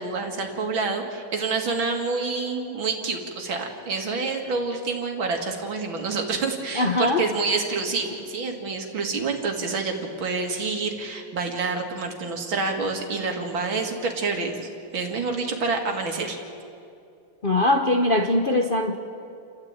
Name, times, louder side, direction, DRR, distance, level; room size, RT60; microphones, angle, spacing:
voice 1, 0.0-16.4, right 4 dB, 70° right, 3 dB, 2.9 m, -28 dB
voice 2, 6.8-7.2 17.4-19.0, left 2 dB, 40° left, 3 dB, 0.8 m, -21 dB
29.5 x 13.0 x 8.9 m, 2.5 s
omnidirectional pair, 2.3 m